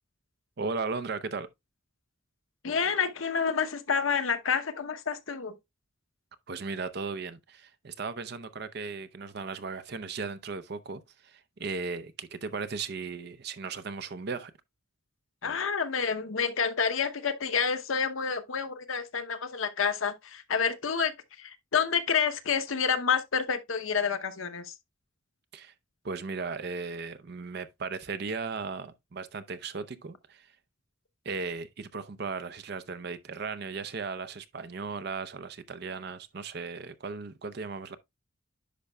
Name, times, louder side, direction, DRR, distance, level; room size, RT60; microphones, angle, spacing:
voice 1, 0.6-1.5 6.5-14.5 25.5-25.7 26.0-30.5 31.2-38.0, right 4 dB, 55° right, 0.6 m, -36 dB
voice 2, 2.6-5.5 15.4-21.1 21.4-24.7, left 6 dB, 80° left, 0.8 m, -29 dB
10.0 x 5.4 x 2.2 m
head